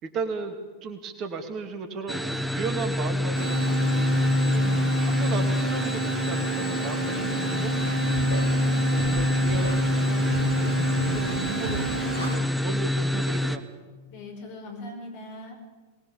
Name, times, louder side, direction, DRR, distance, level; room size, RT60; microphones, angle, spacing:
voice 1, 0.0-4.6 5.0-7.7 8.7-13.6, right 4 dB, 35° right, 6 dB, 2.6 m, -36 dB
sound 1, 2.1-13.6, left 1 dB, ahead, 1.1 m, -26 dB
sound 2, 3.3-12.3, right 4 dB, 70° right, 2.2 m, -32 dB
voice 2, 4.5-4.9 6.8-7.7 14.1-15.6, left 2 dB, 45° left, 3 dB, 5.7 m, -39 dB
Scratching (performance technique), 7.8-8.4 9.0-9.1 9.5-9.7 10.3-10.7 11.0-11.4 11.6-11.8 12.1-12.3, equal, 75° left, 7.7 m, -33 dB
23.5 x 20.0 x 7.2 m, 1.3 s
figure-of-eight pair, 90°, 0 cm